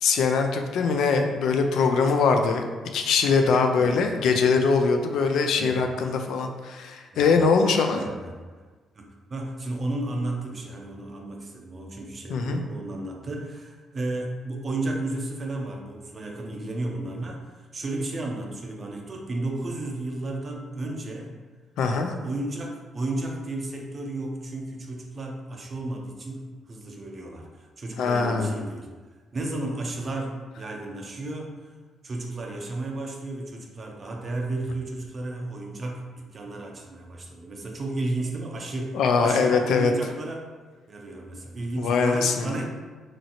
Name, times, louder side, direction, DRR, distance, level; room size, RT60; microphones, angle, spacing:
voice 1, 0.0-2.7 2.9-8.0 12.3-12.6 21.8-22.1 28.0-28.5 38.9-39.9 41.8-42.5, left 5 dB, 75° left, 5 dB, 0.3 m, -22 dB
voice 2, 8.0-8.3 8.9-21.3 22.1-28.9 29.3-31.5 32.0-40.5 40.9-42.7, right 2 dB, 40° right, 1 dB, 0.5 m, -33 dB
3.0 x 2.5 x 2.8 m, 1.4 s
supercardioid pair, 70°, 0 cm